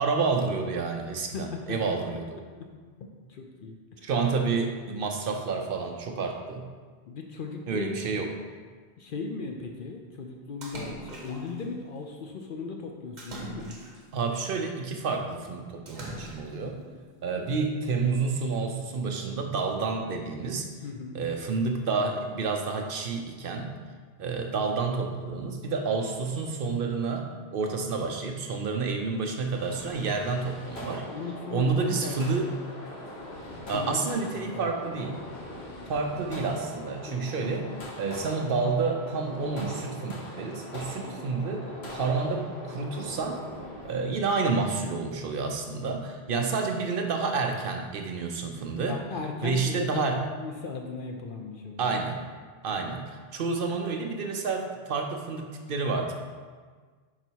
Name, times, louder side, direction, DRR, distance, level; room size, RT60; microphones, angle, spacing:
voice 1, 0.0-2.3 4.0-6.7 7.7-8.3 14.1-16.8 17.2-20.7 21.1-23.7 24.2-31.0 31.5-32.5 33.7-35.2 35.9-37.7 38.0-43.4 43.8-49.0 49.4-50.2 51.8-52.2 52.6-56.1, right 4 dB, 65° right, 3 dB, 0.7 m, -29 dB
voice 2, 1.3-1.8 3.3-4.1 7.1-8.1 9.0-13.8 16.6-17.0 20.8-21.2 31.0-32.4 33.7-34.0 34.3-34.7 37.1-37.4 41.0-41.4 46.3-46.5 48.9-51.9 52.7-52.8, left 4 dB, 60° left, 2 dB, 0.7 m, -38 dB
Splash splatter, 10.6-11.6 13.2-14.2 15.9-16.7, right 2 dB, 45° right, 1.0 m, -41 dB
sound 1, 29.5-44.0, left 1 dB, 80° left, 1.4 m, -41 dB
5.1 x 4.1 x 4.5 m, 1.5 s
omnidirectional pair, 1.1 m